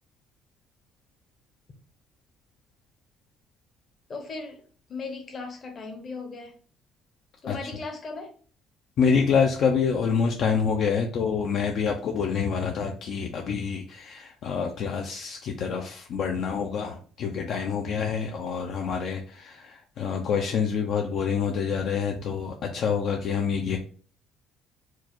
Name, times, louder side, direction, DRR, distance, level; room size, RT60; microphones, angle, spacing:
voice 1, 4.1-4.6 4.9-6.5 7.4-8.3, left 3 dB, 30° left, 0.9 m, -37 dB
voice 2, 9.0-23.8, left 6 dB, 50° left, 0.5 m, -27 dB
4.6 x 2.4 x 4.2 m
cardioid pair, 175°, 0 cm